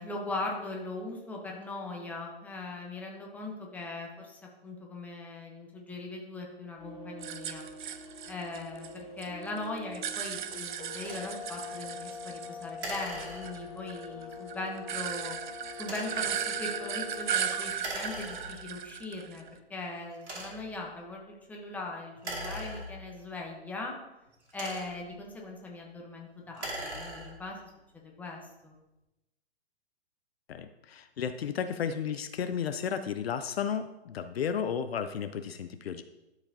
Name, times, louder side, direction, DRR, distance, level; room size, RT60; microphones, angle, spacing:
voice 1, 0.0-7.6 8.2-15.4 15.8-19.4 19.7-23.9 24.5-27.6 27.9-28.7, left 2 dB, 5° left, -1 dB, 1.0 m, -40 dB
sound 1, 6.8-17.8, left 4 dB, 25° left, 1.2 m, -44 dB
sound 2, 7.2-9.3 9.6-12.9 13.2-19.5, right 9 dB, 45° right, 0.5 m, -36 dB
sound 3, 11.0-11.3 12.8-13.8 15.8-16.3 17.8-18.8 19.5-19.6 20.2-20.8 22.1-23.3 24.3-25.2 26.4-27.5, right 1 dB, 75° right, 2.5 m, -40 dB
voice 2, 30.5-36.0, left 7 dB, 65° left, 10 dB, 0.6 m, -33 dB
12.0 x 4.9 x 2.8 m, 0.99 s
hypercardioid pair, 130°, 33 cm